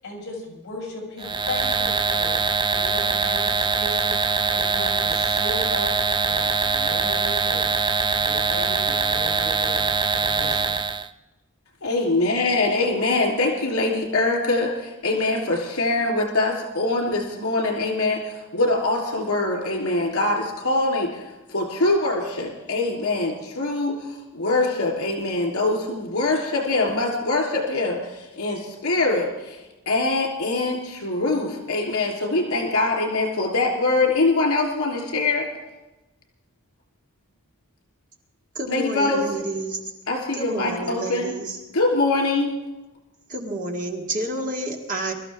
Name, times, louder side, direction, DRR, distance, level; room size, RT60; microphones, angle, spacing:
voice 1, 0.0-5.9 6.2-7.7 8.1-9.9 10.1-10.7, left 2 dB, 55° left, -2 dB, 7.1 m, -36 dB
sound 1, 1.2-11.1, right 5 dB, 20° right, 0.4 m, -23 dB
voice 2, 11.8-29.6 29.8-35.5 38.7-39.2 40.1-41.3 41.7-42.5, left 2 dB, 80° left, 0 dB, 3.4 m, -23 dB
voice 3, 38.5-39.8 40.3-41.6 43.3-45.1, right 2 dB, 35° right, 1 dB, 2.0 m, -29 dB
24.0 x 13.5 x 3.6 m, 1.1 s
head